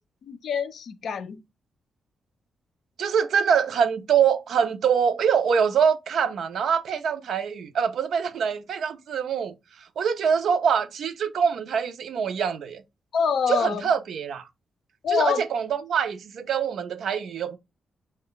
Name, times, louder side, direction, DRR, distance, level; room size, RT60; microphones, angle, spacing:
voice 1, 0.3-1.4 13.1-13.8 15.0-15.4, left 6 dB, 70° left, 0.4 m, -25 dB
voice 2, 3.0-9.5 10.0-12.8 13.5-14.4 15.1-17.6, right 7 dB, 75° right, 0.4 m, -24 dB
3.1 x 2.1 x 3.8 m
cardioid pair, 85°, 0 cm